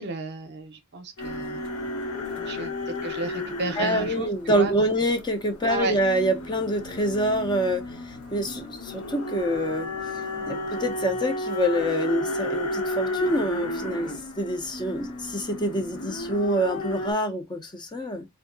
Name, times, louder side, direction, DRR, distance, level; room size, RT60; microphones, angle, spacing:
voice 1, 0.0-1.6 2.4-4.7 5.7-6.0, right 3 dB, 50° right, 0.6 m, -32 dB
sound 1, 1.2-17.1, left 1 dB, 65° left, 1.4 m, -33 dB
voice 2, 3.8-9.9 10.4-18.3, equal, 20° left, 0.5 m, -26 dB
3.5 x 2.8 x 2.6 m
head